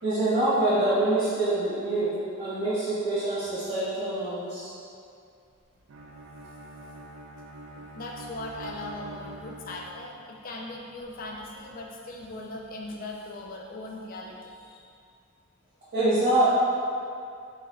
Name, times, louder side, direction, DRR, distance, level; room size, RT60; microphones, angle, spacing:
voice 1, 0.0-4.7 15.9-16.5, right 2 dB, 50° right, -15 dB, 1.3 m, -25 dB
Bowed string instrument, 5.9-10.3, right 2 dB, 85° right, 0.4 m, -44 dB
voice 2, 7.8-14.9, left 2 dB, 45° left, -1 dB, 0.4 m, -39 dB
3.2 x 2.7 x 3.8 m, 2.4 s
head